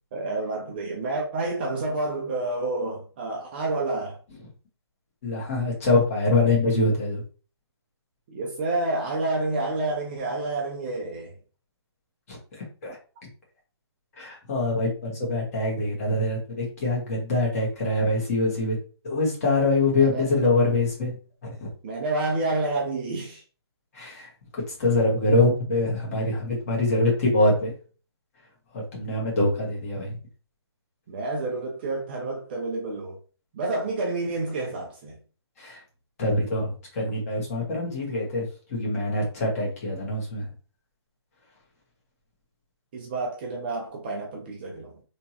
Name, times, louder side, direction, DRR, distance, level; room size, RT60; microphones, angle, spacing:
voice 1, 0.1-4.2 8.3-11.3 19.9-20.3 21.8-23.4 31.1-33.2 33.5-35.2 42.9-44.9, right 2 dB, 25° right, 0.6 m, -29 dB
voice 2, 5.2-7.2 12.3-12.4 12.8-13.0 14.2-18.8 19.0-21.1 21.4-21.7 23.9-27.7 28.9-30.2 35.6-35.8 36.2-40.5, left 2 dB, 35° left, 1.7 m, -24 dB
3.5 x 3.0 x 2.8 m
hypercardioid pair, 165°, 14 cm